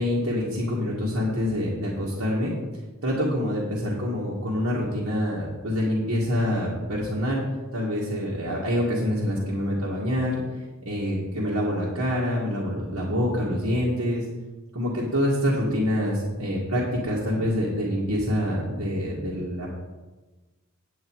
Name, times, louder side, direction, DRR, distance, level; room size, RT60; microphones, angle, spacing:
voice 1, 0.0-2.5 3.0-7.4 7.7-10.4 10.9-14.2 14.7-19.7, equal, 70° right, -6 dB, 2.0 m, -26 dB
9.4 x 8.5 x 4.7 m, 1.2 s
head